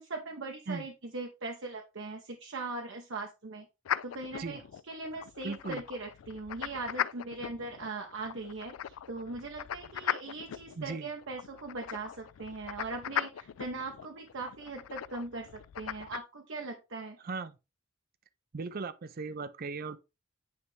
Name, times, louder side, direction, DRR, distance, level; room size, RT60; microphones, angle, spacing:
voice 1, 0.0-3.7 4.0-4.6 4.9-17.2, right 3 dB, 65° right, 0.9 m, -40 dB
sound 1, 3.8-16.2, left 10 dB, 75° left, 0.3 m, -39 dB
voice 2, 5.4-5.8 10.8-11.1 17.2-17.6 18.5-20.0, right 4 dB, 45° right, 0.5 m, -37 dB
9.5 x 3.4 x 3.2 m
head